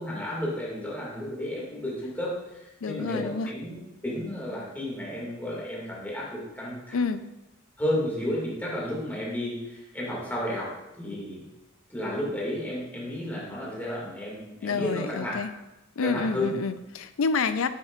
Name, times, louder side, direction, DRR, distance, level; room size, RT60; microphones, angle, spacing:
voice 1, 0.0-7.1 7.8-10.7 11.0-11.5 11.9-15.4 16.0-16.5, left 1 dB, 10° left, -5 dB, 2.1 m, -32 dB
voice 2, 2.8-3.5 6.9-7.2 14.6-15.5 16.0-17.7, left 4 dB, 80° left, 12 dB, 0.5 m, -28 dB
9.7 x 6.6 x 2.4 m, 0.96 s
head